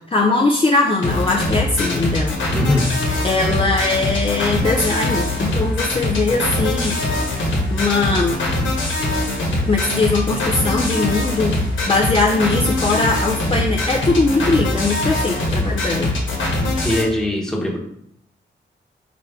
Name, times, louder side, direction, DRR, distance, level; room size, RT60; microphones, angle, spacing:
voice 1, 0.1-2.3 3.2-7.0 7.7-8.4 9.7-16.2, left 3 dB, 30° left, -1 dB, 0.5 m, -20 dB
sound 1, 1.0-17.0, left 2 dB, 85° left, 1.3 m, -22 dB
voice 2, 2.5-2.9 16.8-17.8, left 1 dB, 5° left, -2 dB, 1.1 m, -21 dB
4.8 x 3.1 x 3.6 m, 0.74 s
cardioid pair, 70°, 20 cm